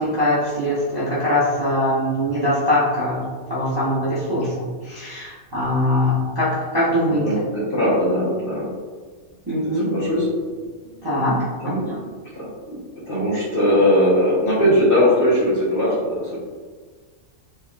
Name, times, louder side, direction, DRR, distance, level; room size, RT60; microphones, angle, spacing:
voice 1, 0.0-7.3 9.5-9.9 11.0-11.4 11.6-12.0, left 1 dB, 25° right, -11 dB, 0.5 m, -22 dB
voice 2, 7.1-8.7 9.5-10.3 11.6-11.8 12.3-12.8 13.1-16.4, equal, 50° left, -8 dB, 1.0 m, -20 dB
3.3 x 2.3 x 2.2 m, 1.5 s
omnidirectional pair, 1.3 m